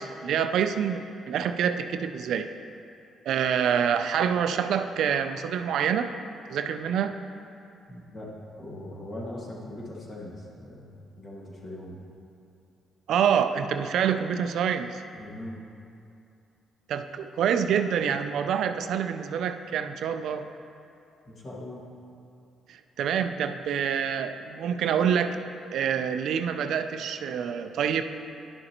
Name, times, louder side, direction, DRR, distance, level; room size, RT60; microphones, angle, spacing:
voice 1, 0.0-2.5 3.3-6.1 6.5-7.2 13.1-15.0 16.9-20.5 22.7-25.4 25.7-28.0, right 8 dB, 75° right, 9 dB, 0.4 m, -26 dB
voice 2, 7.9-12.0 15.2-15.6 21.3-21.8, left 1 dB, 45° left, -4 dB, 1.8 m, -40 dB
11.0 x 6.5 x 2.9 m, 2.6 s
cardioid pair, 90°, 0 cm